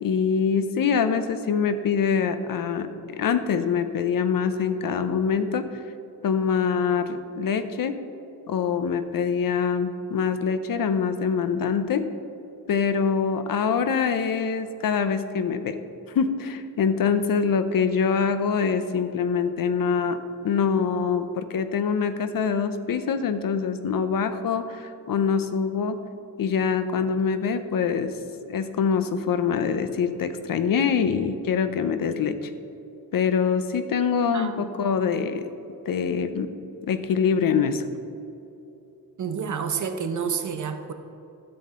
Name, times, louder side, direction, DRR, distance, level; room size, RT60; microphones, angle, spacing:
voice 1, 0.0-5.7 6.2-8.0 8.5-12.1 12.7-15.8 16.1-26.0 26.4-28.1 28.5-32.5 33.1-35.4 35.9-36.5 36.9-37.8, left 6 dB, 65° left, 10 dB, 0.8 m, -24 dB
voice 2, 34.3-34.7 39.2-40.9, right 6 dB, 55° right, 7 dB, 0.9 m, -29 dB
12.5 x 7.6 x 3.8 m, 2.9 s
wide cardioid pair, 110°, 36 cm